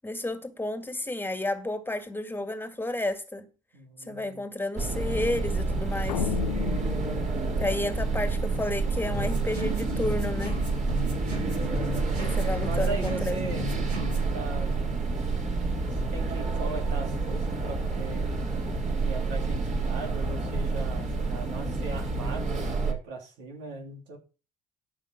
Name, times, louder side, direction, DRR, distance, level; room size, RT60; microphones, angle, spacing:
voice 1, 0.0-3.5 4.1-6.3 7.6-10.6 12.2-13.3, left 1 dB, 10° left, 2.1 m, -31 dB
voice 2, 3.7-4.5 10.9-11.3 12.6-14.8 15.8-18.3 19.0-24.2, right 2 dB, 70° right, 2.9 m, -39 dB
sound 1, 4.8-22.9, right 3 dB, 40° right, 3.7 m, -29 dB
sound 2, 6.1-8.5, left 11 dB, 90° left, 0.7 m, -34 dB
sound 3, 9.1-14.3, left 1 dB, 90° right, 3.3 m, -36 dB
13.5 x 5.5 x 6.0 m
hypercardioid pair, 55°, 20 cm